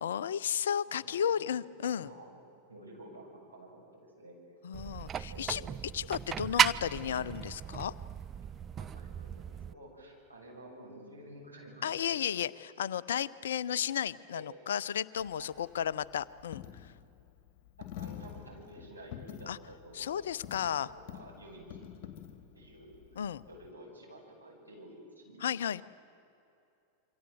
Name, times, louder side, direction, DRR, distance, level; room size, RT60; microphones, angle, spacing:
voice 1, 0.0-2.1 4.6-5.6 5.9-7.9 11.8-12.5 12.8-16.9 19.5-19.6 19.9-20.9 23.2-23.4 25.4-25.8, left 9 dB, 60° left, 18 dB, 0.6 m, -33 dB
voice 2, 0.9-1.5 1.8-2.4 2.7-4.4 5.3-5.7 8.8-12.4 14.3-14.5 15.4-15.6 17.8-21.9 22.6-23.0 23.4-25.5, right 1 dB, 85° right, -2 dB, 7.0 m, -51 dB
sound 1, 4.7-9.7, right 8 dB, 25° right, 0.6 m, -34 dB
Coin (dropping), 15.2-23.7, left 10 dB, 45° left, 2.5 m, -48 dB
28.0 x 25.0 x 7.6 m, 2.7 s
figure-of-eight pair, 90°, 0 cm